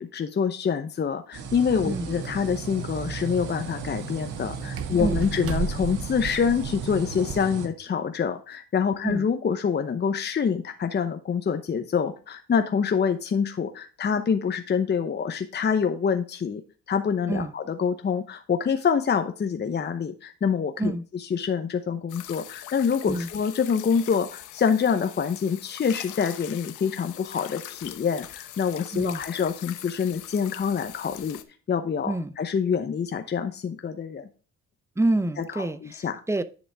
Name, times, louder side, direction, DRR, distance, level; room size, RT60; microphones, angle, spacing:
voice 1, 0.0-16.6 16.9-20.9 21.3-31.4 31.7-34.3 35.6-36.2, left 6 dB, 35° left, 7 dB, 0.8 m, -26 dB
sound 1, 1.3-7.7, right 5 dB, 90° right, 1.7 m, -35 dB
sound 2, 2.2-7.4, right 8 dB, 50° right, 0.8 m, -36 dB
sound 3, 22.1-31.4, left 13 dB, 85° left, 0.8 m, -42 dB
voice 2, 35.0-36.4, right 2 dB, 10° right, 12 dB, 0.7 m, -27 dB
10.0 x 5.2 x 3.4 m, 0.37 s
cardioid pair, 90°, 30 cm